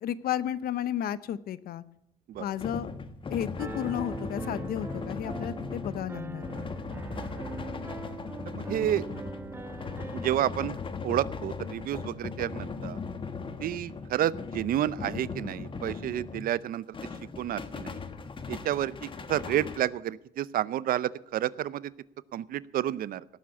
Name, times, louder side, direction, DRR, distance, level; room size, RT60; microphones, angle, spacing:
voice 1, 0.0-1.8 2.4-2.9 3.3-6.4, left 10 dB, 60° left, 16 dB, 0.8 m, -32 dB
sound 1, 2.3-16.6 16.9-19.8, left 4 dB, 30° left, 1.4 m, -38 dB
Piano, 3.6-10.4, right 4 dB, 15° right, 0.6 m, -41 dB
voice 2, 8.5-9.1 10.1-13.0 13.6-17.0 17.4-18.0 18.5-21.9 22.3-23.2, right 12 dB, 60° right, 19 dB, 0.6 m, -30 dB
17.5 x 7.5 x 8.4 m, 0.78 s
cardioid pair, 110°, 17 cm